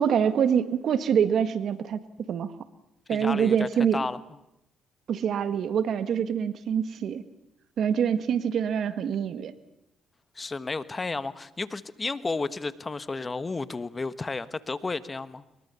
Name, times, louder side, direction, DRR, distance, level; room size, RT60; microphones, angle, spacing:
voice 1, 0.0-2.0 2.3-2.5 3.1-4.1 5.1-7.2 7.8-9.5, right 8 dB, 65° right, 12 dB, 1.7 m, -25 dB
voice 2, 3.1-4.2 10.3-15.4, left 3 dB, 30° left, 15 dB, 1.4 m, -32 dB
23.0 x 22.0 x 7.1 m, 0.84 s
supercardioid pair, 60°, 0 cm